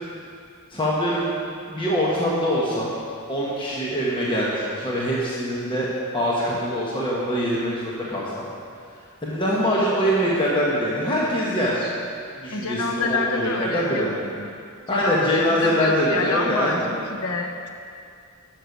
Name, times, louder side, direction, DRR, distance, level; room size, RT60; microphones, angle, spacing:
voice 1, 0.7-1.3 1.7-2.9 3.3-5.9 6.1-8.4 9.2-11.9 12.3-14.1 14.9-16.9, equal, 25° left, -6 dB, 1.2 m, -23 dB
voice 2, 12.5-14.5 14.9-17.7, left 3 dB, 80° left, 4 dB, 0.9 m, -27 dB
11.0 x 6.5 x 5.3 m, 2.4 s
head